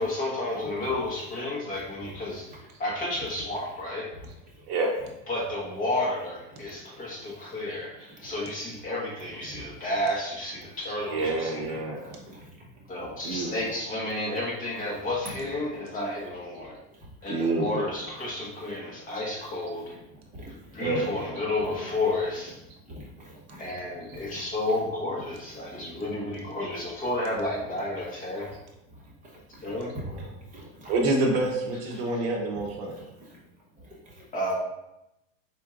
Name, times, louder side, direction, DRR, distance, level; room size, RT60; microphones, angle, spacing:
voice 1, 0.0-2.5 2.8-4.1 5.3-11.8 12.9-16.8 17.2-19.8 20.7-22.6 23.6-28.5 29.6-29.9 34.3-34.5, left 1 dB, 20° left, -5 dB, 1.1 m, -31 dB
voice 2, 7.1-7.5 7.9-8.3 9.5-9.7 11.2-11.3 11.6-11.8 12.0-13.4 16.9-17.1 18.5-18.7 19.9-20.9 21.6-21.8 22.9-23.7 24.1-24.4 25.6-26.1 28.4-28.5 28.9-30.9 32.5-32.6 33.0-33.4 33.8-34.3, equal, 20° right, -4 dB, 1.0 m, -46 dB
voice 3, 10.9-12.1 13.2-13.8 17.3-17.9 20.8-21.4 30.0-30.3 30.9-33.0, right 2 dB, 55° right, 1 dB, 0.8 m, -28 dB
4.5 x 4.3 x 2.4 m, 0.87 s
supercardioid pair, 160°, 38 cm